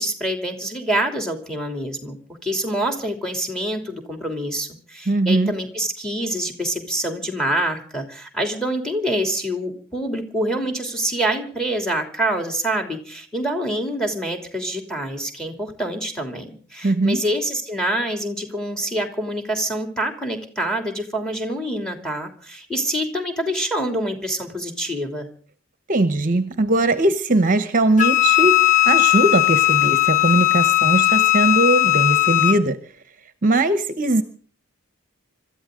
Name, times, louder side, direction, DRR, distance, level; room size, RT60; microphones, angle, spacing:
voice 1, 0.0-2.2 2.4-25.3, right 1 dB, 5° left, 5 dB, 3.1 m, -26 dB
voice 2, 5.1-5.6 16.8-17.2 25.9-32.8 33.4-34.2, right 2 dB, 40° right, 11 dB, 1.0 m, -20 dB
Wind instrument woodwind instrument, 28.0-32.6, left 17 dB, 35° left, 0.7 m, -17 dB
26.0 x 13.5 x 3.8 m, 0.43 s
head